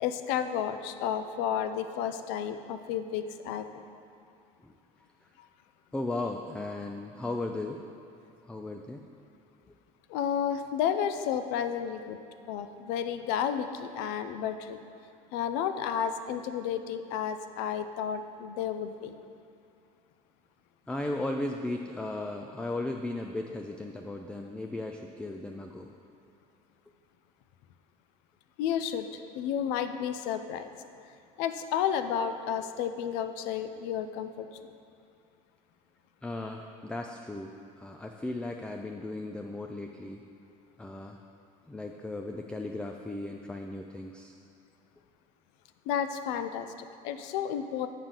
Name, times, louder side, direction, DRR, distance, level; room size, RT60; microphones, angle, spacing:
voice 1, 0.0-3.8 10.1-12.2 12.5-14.8 15.3-19.1 28.6-30.7 31.4-34.5 45.9-47.9, left 8 dB, 75° left, 9 dB, 0.4 m, -32 dB
voice 2, 5.9-7.8 8.4-9.0 9.7-9.8 20.9-25.9 36.2-40.2 40.8-41.2 41.7-44.3, left 2 dB, 5° left, 3 dB, 0.3 m, -36 dB
7.1 x 5.7 x 3.8 m, 2.5 s
supercardioid pair, 90°, 18 cm